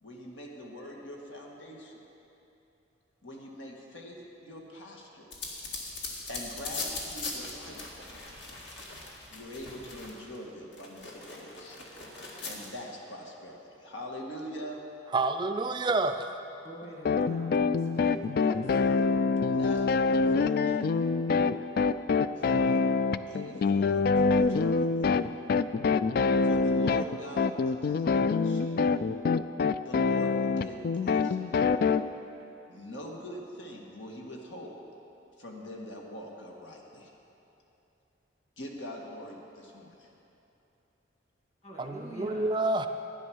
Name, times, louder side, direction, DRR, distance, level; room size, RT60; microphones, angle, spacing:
voice 1, 0.0-2.0 3.2-5.6 6.3-8.3 9.3-11.8 12.4-14.8 19.5-20.9 22.4-22.9 23.3-24.9 26.4-28.8 29.8-31.9 32.7-34.8 35.4-37.1 38.6-40.1, equal, 85° left, -1 dB, 1.8 m, -44 dB
sound 1, 5.3-10.4 10.7-12.7, left 3 dB, 70° left, 1.9 m, -40 dB
voice 2, 15.1-16.3 41.8-42.9, right 2 dB, 25° right, 7 dB, 0.4 m, -28 dB
voice 3, 16.6-19.1 41.6-42.5, right 1 dB, 35° left, -2 dB, 2.1 m, -45 dB
sound 2, 17.0-32.0, left 4 dB, 50° left, 0.3 m, -25 dB
12.5 x 9.8 x 6.3 m, 2.9 s
head